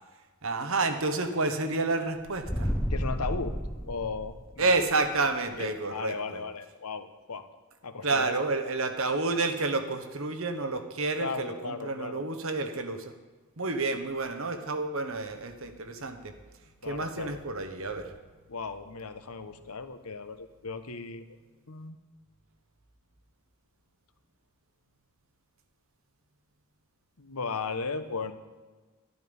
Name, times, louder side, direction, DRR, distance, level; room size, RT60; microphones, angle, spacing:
voice 1, 0.4-2.7 4.6-6.4 8.0-13.1 13.6-16.3 16.8-18.1, right 3 dB, 60° right, 8 dB, 1.3 m, -30 dB
sound 1, 2.3-4.8, equal, 5° left, 0.7 m, -31 dB
voice 2, 2.9-3.5 3.8-4.7 5.6-7.5 7.8-8.3 11.2-12.3 16.8-17.4 18.5-21.4 21.7-22.0 27.2-28.3, left 4 dB, 80° left, 9 dB, 1.0 m, -36 dB
12.0 x 11.5 x 5.4 m, 1.3 s
head